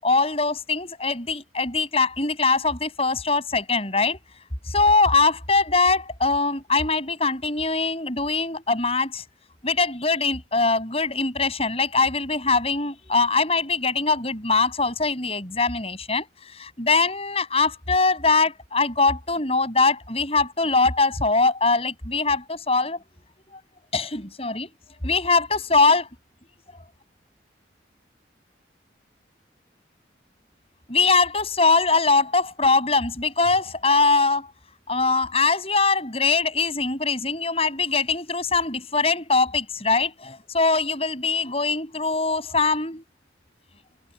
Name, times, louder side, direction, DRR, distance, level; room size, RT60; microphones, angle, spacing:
voice 1, 0.0-4.2 4.7-9.2 9.6-16.3 16.5-23.0 23.9-24.7 25.0-26.1 30.9-34.5 34.9-43.0, left 3 dB, 30° left, 7.3 m, -22 dB
head